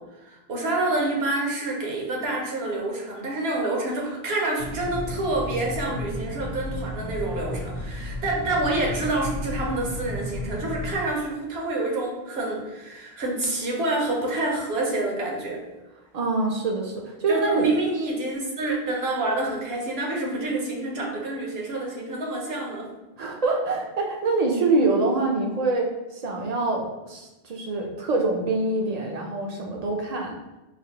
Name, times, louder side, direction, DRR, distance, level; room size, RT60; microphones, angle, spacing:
voice 1, 0.0-15.6 17.3-22.9, right 2 dB, 80° right, -1 dB, 1.1 m, -27 dB
sound 1, 4.6-10.9, left 1 dB, 70° left, 0.8 m, -33 dB
voice 2, 16.1-17.7 23.2-30.4, right 3 dB, 55° right, 1 dB, 0.5 m, -25 dB
4.8 x 2.1 x 2.8 m, 1.0 s
omnidirectional pair, 1.0 m